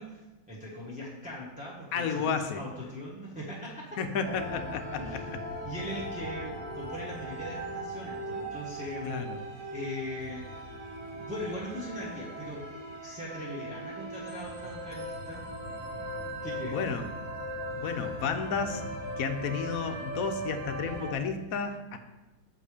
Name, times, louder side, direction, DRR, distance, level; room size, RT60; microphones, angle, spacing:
voice 1, 0.0-4.0 5.0-5.4 5.6-9.2 9.5-10.8 11.1-12.7 13.0-15.5 16.4-17.1, equal, 5° right, -7 dB, 1.1 m, -40 dB
voice 2, 1.9-2.6 4.0-5.2 9.1-9.4 16.7-17.0 17.8-18.9 19.2-22.0, left 6 dB, 65° left, 7 dB, 1.0 m, -32 dB
sound 1, 4.2-21.1, right 1 dB, 45° right, 1.4 m, -39 dB
7.5 x 5.3 x 4.9 m, 1.1 s
omnidirectional pair, 1.9 m